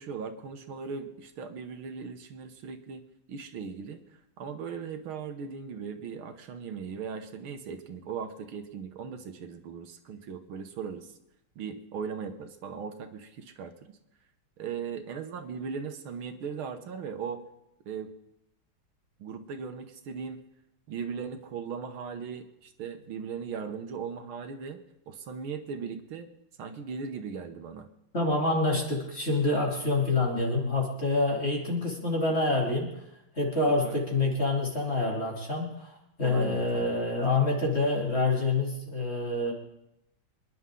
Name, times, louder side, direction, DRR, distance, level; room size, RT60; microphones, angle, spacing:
voice 1, 0.0-4.0 4.4-11.1 11.6-13.7 14.6-17.4 17.9-18.1 19.2-20.4 20.9-24.8 25.1-26.3 26.6-27.9 33.8-34.0 36.2-37.0, right 6 dB, 80° right, 7 dB, 2.0 m, -38 dB
voice 2, 28.1-32.9 33.4-39.5, left 2 dB, 30° left, -2 dB, 3.4 m, -27 dB
26.5 x 11.0 x 3.8 m, 0.84 s
omnidirectional pair, 2.3 m